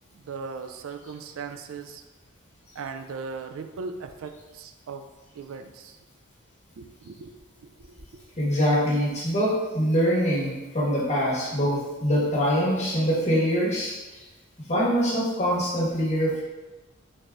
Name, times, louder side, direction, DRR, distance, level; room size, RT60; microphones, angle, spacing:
voice 1, 0.1-2.0 2.8-5.1 5.4-6.0 6.8-8.5, right 5 dB, 75° right, 7 dB, 0.3 m, -39 dB
voice 2, 8.4-14.2 14.6-16.4, equal, 35° left, -8 dB, 1.4 m, -24 dB
4.0 x 2.6 x 3.5 m, 1.1 s
head